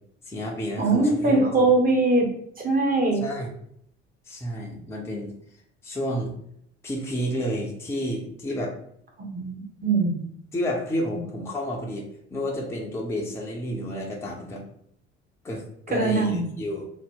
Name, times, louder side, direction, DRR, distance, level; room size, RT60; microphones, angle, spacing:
voice 1, 0.3-1.4 3.2-3.5 4.3-5.3 5.8-6.3 6.8-8.7 10.5-14.6 15.4-16.9, equal, 5° left, -1 dB, 0.6 m, -30 dB
voice 2, 0.8-2.3 2.6-3.2 9.2-10.3 15.9-16.5, right 2 dB, 25° right, 1 dB, 0.9 m, -22 dB
2.8 x 2.0 x 3.6 m, 0.69 s
figure-of-eight pair, 55°, 35 cm